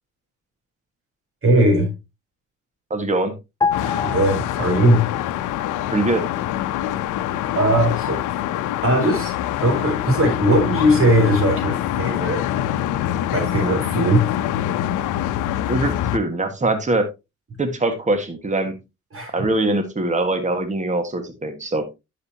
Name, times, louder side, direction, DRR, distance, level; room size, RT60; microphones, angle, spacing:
voice 1, 1.4-1.9 4.0-5.1 7.5-8.2 8.8-9.3 9.6-12.4 13.3-14.3 19.1-19.3, right 1 dB, 45° right, 4.4 m, -19 dB
voice 2, 2.9-3.3 5.9-6.2 15.7-17.1 17.6-18.7 19.3-21.9, right 2 dB, 25° right, 1.7 m, -22 dB
sound 1, 3.6-5.2 5.5-5.7, left 5 dB, 15° left, 0.6 m, -27 dB
sound 2, 3.7-16.2, left 12 dB, 90° left, 0.7 m, -25 dB
10.5 x 6.8 x 2.8 m
cardioid pair, 90°, 30 cm